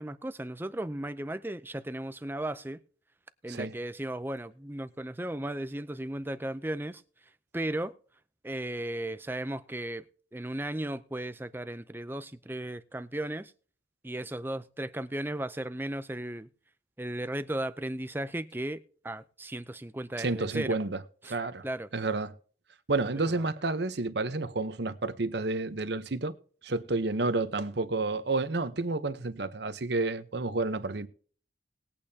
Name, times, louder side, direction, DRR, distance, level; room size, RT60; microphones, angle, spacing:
voice 1, 0.0-2.8 3.4-7.0 7.5-8.0 8.4-10.0 10.3-13.5 14.0-16.5 17.0-18.8 19.0-20.8 21.2-21.3 21.6-21.9, right 1 dB, 10° right, 0.5 m, -35 dB
voice 2, 20.2-21.6 21.9-22.3 22.9-26.3 26.6-31.1, right 3 dB, 60° right, 0.9 m, -30 dB
19.5 x 8.7 x 2.8 m
head